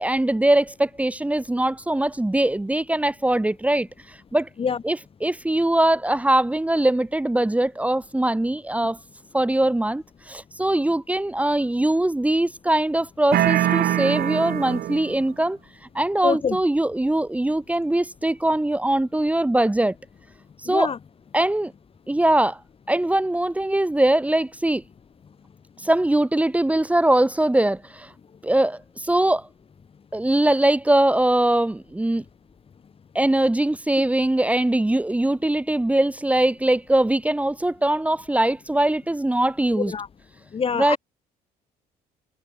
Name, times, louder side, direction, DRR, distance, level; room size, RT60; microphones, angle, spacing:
voice 1, 0.0-4.5 4.8-9.0 9.3-15.6 16.0-19.9 20.6-20.9 21.3-21.7 22.1-22.6 22.9-24.8 25.8-28.1 28.4-29.5 30.1-32.2 33.2-39.9 40.7-41.0, right 1 dB, 10° right, 1.8 m, -21 dB
sound 1, 13.3-15.3, right 13 dB, 60° right, 1.2 m, -23 dB
voice 2, 16.2-16.6 20.7-21.0 39.7-40.1 40.5-41.0, left 6 dB, 35° left, 2.0 m, -25 dB
cardioid pair, 110°, 17 cm